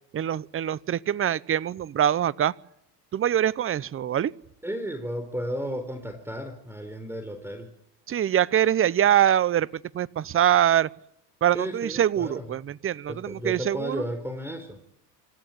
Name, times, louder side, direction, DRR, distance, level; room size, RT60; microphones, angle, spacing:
voice 1, 0.1-2.5 3.1-4.3 8.1-10.9 11.4-14.0, right 10 dB, 25° right, 22 dB, 0.8 m, -24 dB
voice 2, 4.6-7.7 11.5-12.5 13.1-14.8, equal, 5° right, 8 dB, 4.0 m, -33 dB
27.0 x 14.5 x 9.2 m, 0.81 s
hypercardioid pair, 90°, 49 cm